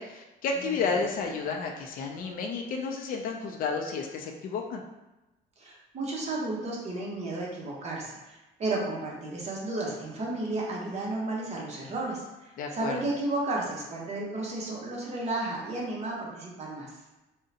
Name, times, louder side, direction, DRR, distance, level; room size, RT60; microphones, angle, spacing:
voice 1, 0.0-4.8 12.6-13.1, left 4 dB, 55° left, 2 dB, 0.4 m, -31 dB
voice 2, 5.6-16.9, right 2 dB, 40° right, -3 dB, 0.9 m, -33 dB
3.6 x 2.1 x 2.7 m, 1.0 s
cardioid pair, 110°, 17 cm